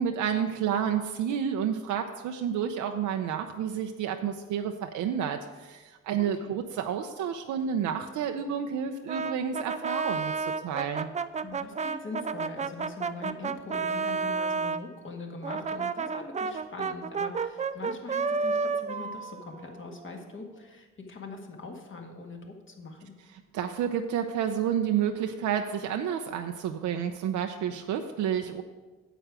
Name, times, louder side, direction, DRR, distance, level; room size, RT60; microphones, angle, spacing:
voice 1, 0.0-11.1 23.5-28.6, right 8 dB, 80° right, 5 dB, 0.7 m, -30 dB
voice 2, 6.2-6.6 11.4-23.2, left 3 dB, 40° left, 2 dB, 1.9 m, -42 dB
Brass instrument, 9.1-14.8 15.4-20.2, right 5 dB, 25° right, 0.4 m, -31 dB
9.1 x 7.8 x 4.9 m, 1.3 s
cardioid pair, 90°, 30 cm